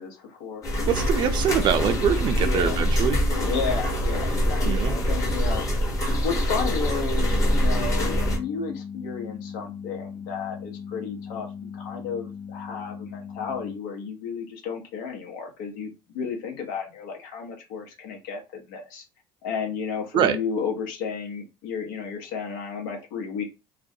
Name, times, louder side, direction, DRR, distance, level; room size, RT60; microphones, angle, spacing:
voice 1, 0.0-0.7 2.4-2.8 3.4-5.6 6.2-11.5 11.7-19.0 19.4-23.4, left 6 dB, 85° left, 0.8 m, -33 dB
sound 1, 0.6-8.4, equal, 30° left, 0.9 m, -24 dB
voice 2, 0.9-3.2 4.6-5.0 20.1-20.4, right 8 dB, 50° right, 0.5 m, -24 dB
sound 2, 7.2-13.8, left 6 dB, 65° left, 0.5 m, -38 dB
2.4 x 2.1 x 2.7 m
supercardioid pair, 100°, 10 cm